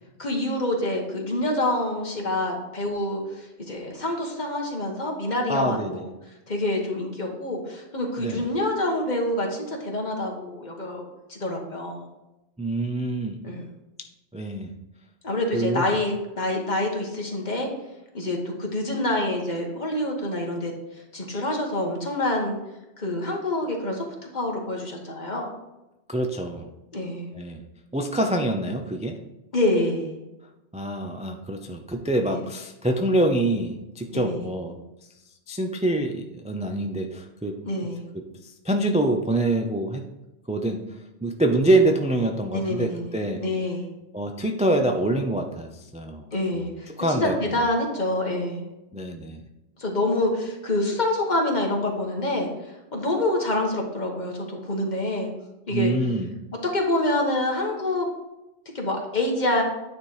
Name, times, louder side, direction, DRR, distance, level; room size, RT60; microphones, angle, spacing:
voice 1, 0.2-6.1 6.5-12.0 13.4-13.7 15.2-17.7 18.1-20.7 21.1-22.5 23.0-24.0 24.3-25.5 26.9-27.3 29.5-30.1 32.3-32.4 34.1-34.4 37.7-38.1 42.5-43.1 43.4-43.9 46.3-48.7 49.8-55.3 55.7-55.9 56.7-58.1 58.7-59.6, left 1 dB, 40° left, 0 dB, 1.5 m, -26 dB
voice 2, 5.5-6.0 8.2-8.5 12.6-13.4 14.3-14.7 15.5-15.9 26.1-26.7 27.3-27.6 27.9-29.2 30.7-34.7 35.5-37.6 38.1-40.0 40.5-40.8 41.2-43.4 44.1-46.3 46.5-46.7 47.0-47.4 48.9-49.4 55.7-56.3, right 1 dB, 10° right, 3 dB, 0.4 m, -25 dB
9.5 x 4.3 x 4.8 m, 0.96 s
omnidirectional pair, 1.1 m